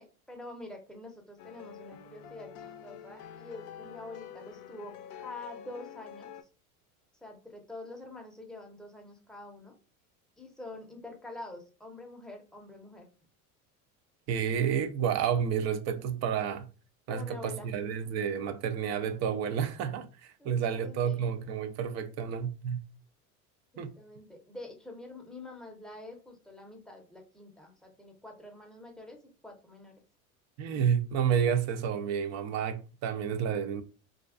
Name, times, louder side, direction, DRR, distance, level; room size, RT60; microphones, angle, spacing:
voice 1, 0.0-6.3 7.2-9.8 10.4-13.1 17.1-17.7 20.4-21.3 23.7-30.0, left 2 dB, ahead, 0.6 m, -46 dB
sound 1, 1.4-6.4, left 8 dB, 65° left, 0.5 m, -47 dB
voice 2, 14.3-16.7 17.1-22.8 23.8-23.9 30.6-33.8, right 8 dB, 40° right, 0.4 m, -30 dB
2.4 x 2.2 x 2.3 m
hypercardioid pair, 90°, 44 cm